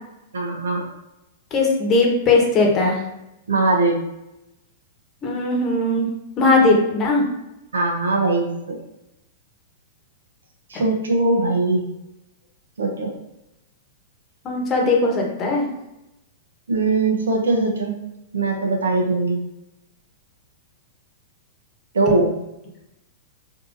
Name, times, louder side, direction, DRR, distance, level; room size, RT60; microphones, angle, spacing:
voice 1, 0.3-0.8 3.5-4.0 7.7-8.5 10.7-11.8 12.8-13.1 16.7-17.9 18.3-19.4 21.9-22.3, right 2 dB, 80° right, 1 dB, 0.7 m, -20 dB
voice 2, 1.5-3.0 5.2-6.1 6.4-7.2 10.7-10.8 14.4-15.6, left 2 dB, 30° left, 0 dB, 1.0 m, -19 dB
3.6 x 2.7 x 2.5 m, 0.91 s
hypercardioid pair, 110°, 0 cm